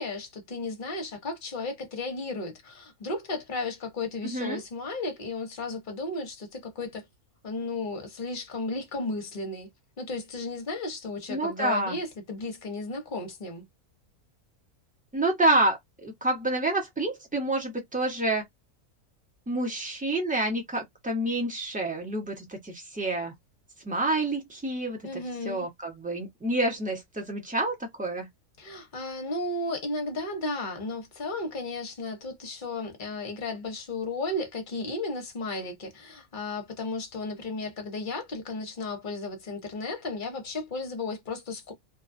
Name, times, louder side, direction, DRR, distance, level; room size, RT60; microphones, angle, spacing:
voice 1, 0.0-7.0 7.4-9.7 10.0-13.6 25.0-25.7 28.6-41.7, left 2 dB, 40° left, 0.8 m, -34 dB
voice 2, 4.2-4.6 11.3-12.0 15.1-18.4 19.5-23.3 23.8-28.3, right 2 dB, 5° right, 0.7 m, -28 dB
2.5 x 2.3 x 2.5 m
omnidirectional pair, 1.6 m